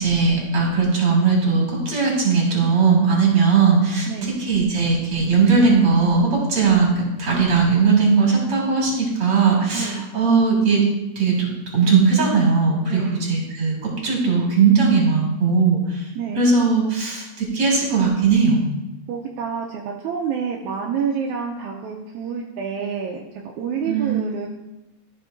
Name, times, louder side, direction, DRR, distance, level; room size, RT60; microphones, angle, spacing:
voice 1, 0.0-10.8 11.2-11.5 11.7-16.1 16.3-18.6 23.8-24.3, right 5 dB, 35° right, -3 dB, 2.9 m, -18 dB
voice 2, 9.7-10.1 12.8-13.2 16.2-16.4 19.1-24.5, right 6 dB, 80° right, 0 dB, 2.0 m, -28 dB
13.5 x 5.6 x 2.6 m, 0.99 s
omnidirectional pair, 3.5 m